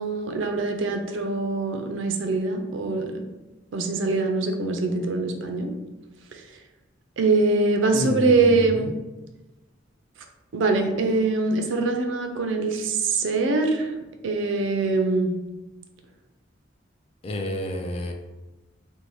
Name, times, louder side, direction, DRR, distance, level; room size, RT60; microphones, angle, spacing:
voice 1, 0.0-3.2 3.7-5.7 6.3-6.4 7.2-8.9 10.5-13.9 14.2-15.3, right 3 dB, 75° right, 5 dB, 0.4 m, -23 dB
voice 2, 7.9-8.9 17.2-18.1, left 1 dB, 30° left, 3 dB, 0.3 m, -30 dB
2.7 x 2.1 x 3.0 m, 1.1 s
head